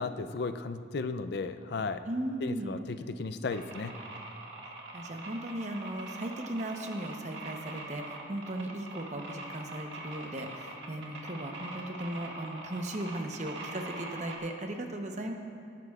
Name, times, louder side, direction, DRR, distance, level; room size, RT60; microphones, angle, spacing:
voice 1, 0.0-2.0 2.4-3.9, left 4 dB, 60° left, 10 dB, 0.4 m, -35 dB
voice 2, 2.1-2.8 4.6-15.3, right 1 dB, 40° right, 4 dB, 0.9 m, -37 dB
sound 1, 3.5-14.4, right 2 dB, 70° right, 1.8 m, -43 dB
18.5 x 10.5 x 2.4 m, 2.5 s
head